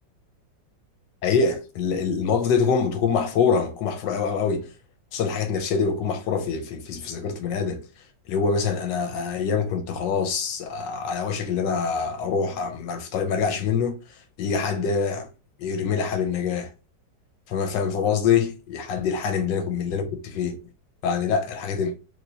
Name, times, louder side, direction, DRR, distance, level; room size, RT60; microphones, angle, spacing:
voice 1, 1.2-4.7 5.1-7.8 8.3-15.3 15.6-16.7 17.5-20.6 21.0-22.0, left 6 dB, 90° left, 1.4 m, -25 dB
3.3 x 3.0 x 2.7 m
omnidirectional pair, 1.9 m